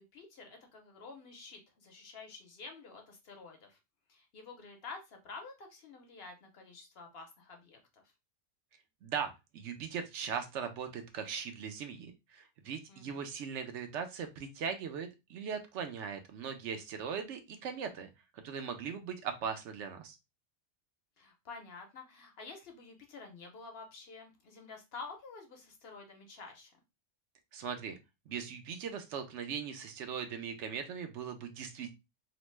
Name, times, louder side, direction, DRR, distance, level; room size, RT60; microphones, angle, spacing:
voice 1, 0.0-3.8 4.1-8.0 12.9-13.3 21.2-26.8, left 4 dB, 60° left, 3 dB, 0.9 m, -49 dB
voice 2, 9.0-20.2 27.5-28.0 28.3-31.9, right 7 dB, 75° right, 7 dB, 0.9 m, -39 dB
3.0 x 2.0 x 3.1 m, 0.24 s
omnidirectional pair, 1.3 m